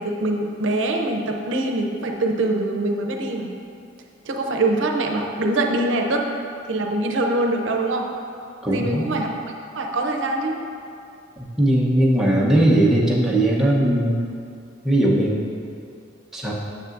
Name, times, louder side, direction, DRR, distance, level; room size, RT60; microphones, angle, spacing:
voice 1, 0.0-3.5 4.2-6.2 6.7-8.1 8.7-9.3 9.7-10.6, right 2 dB, 85° right, 2 dB, 0.6 m, -23 dB
voice 2, 8.6-9.1 11.4-14.2 14.8-15.5 16.3-16.5, right 1 dB, 5° right, -6 dB, 0.9 m, -19 dB
9.3 x 6.8 x 2.6 m, 2.5 s
head